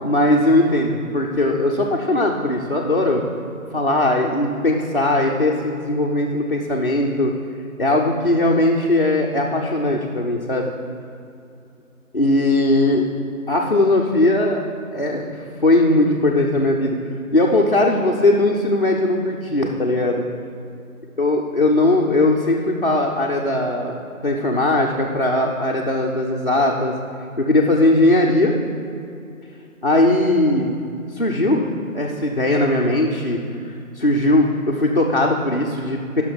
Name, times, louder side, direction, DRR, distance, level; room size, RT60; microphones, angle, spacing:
voice 1, 0.0-3.2 3.7-7.3 7.8-10.7 12.1-13.0 13.5-14.6 14.9-17.0 17.3-20.2 21.2-23.9 24.2-26.9 27.4-28.5 29.8-30.8 31.1-33.4 34.0-36.2, left 1 dB, 40° left, -3 dB, 0.5 m, -19 dB
9.9 x 6.0 x 3.9 m, 2.6 s
figure-of-eight pair, 170°, 43 cm